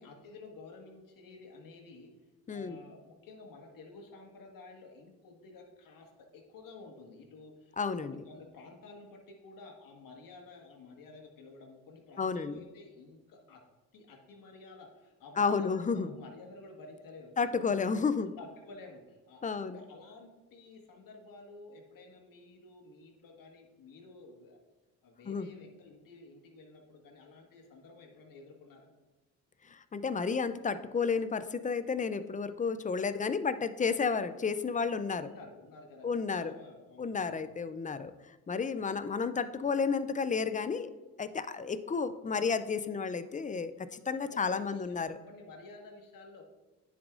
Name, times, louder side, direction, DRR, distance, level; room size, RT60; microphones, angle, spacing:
voice 1, 0.0-2.1 2.5-13.6 13.9-17.5 18.4-24.6 25.0-28.9 35.2-37.5 38.7-38.9 44.2-46.4, left 3 dB, 60° left, 2 dB, 1.5 m, -52 dB
voice 2, 2.5-2.8 7.8-8.2 12.2-12.6 15.4-16.1 17.4-18.3 19.4-19.8 25.3-25.5 29.7-35.3 36.0-36.6 37.0-38.1 38.5-40.9 41.2-45.2, left 5 dB, 20° left, 12 dB, 0.4 m, -32 dB
10.0 x 4.9 x 2.5 m, 1.2 s
supercardioid pair, 65°, 37 cm